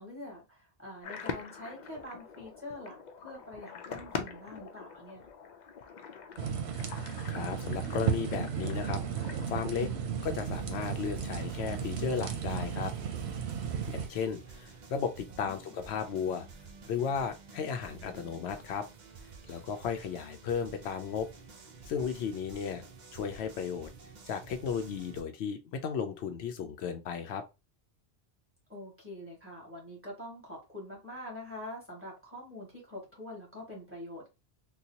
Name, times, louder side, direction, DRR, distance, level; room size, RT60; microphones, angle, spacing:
voice 1, 0.0-5.3 15.3-15.8 28.7-34.3, left 1 dB, 10° right, 1.7 m, -45 dB
sound 1, 1.0-9.9, left 6 dB, 55° left, 0.6 m, -44 dB
sound 2, 6.4-14.1, right 7 dB, 80° right, 0.9 m, -34 dB
voice 2, 7.3-9.0 9.5-9.9 10.2-12.9 13.9-16.5 16.9-18.8 19.5-21.3 21.9-22.8 23.1-23.9 24.3-27.4, left 7 dB, 85° left, 0.8 m, -34 dB
sound 3, 10.5-25.2, right 4 dB, 50° right, 0.7 m, -51 dB
3.9 x 2.3 x 2.8 m
omnidirectional pair, 1.1 m